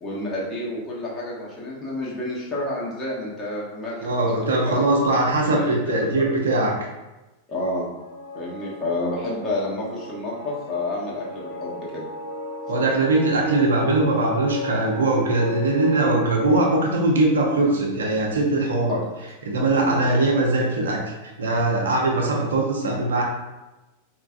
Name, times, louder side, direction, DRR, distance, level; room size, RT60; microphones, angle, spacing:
voice 1, 0.0-4.1 4.4-4.7 5.5-6.2 7.5-7.9 8.3-12.1 18.9-19.0 19.7-20.1, left 1 dB, 25° left, -6 dB, 1.4 m, -30 dB
voice 2, 4.0-6.7 12.7-19.0 19.5-23.2, right 2 dB, 65° right, -1 dB, 0.8 m, -21 dB
sound 1, 8.0-16.9, left 2 dB, 90° left, 1.1 m, -34 dB
4.5 x 3.0 x 2.4 m, 1.1 s
figure-of-eight pair, 90°, 0 cm